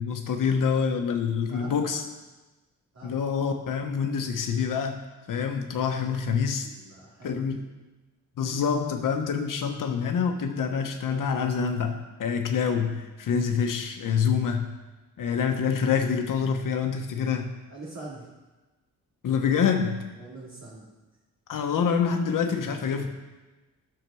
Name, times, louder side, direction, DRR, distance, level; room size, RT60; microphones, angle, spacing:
voice 1, 0.0-2.0 3.0-5.0 5.3-6.7 7.2-7.6 8.4-14.7 15.2-17.5 19.2-20.0 21.5-23.1, left 6 dB, 75° left, 4 dB, 1.1 m, -26 dB
voice 2, 1.5-2.0 2.9-3.1 5.8-7.6 17.7-18.3 20.1-20.9, right 2 dB, 55° right, -6 dB, 2.8 m, -44 dB
12.5 x 6.0 x 7.0 m, 1.1 s
wide cardioid pair, 135°, 32 cm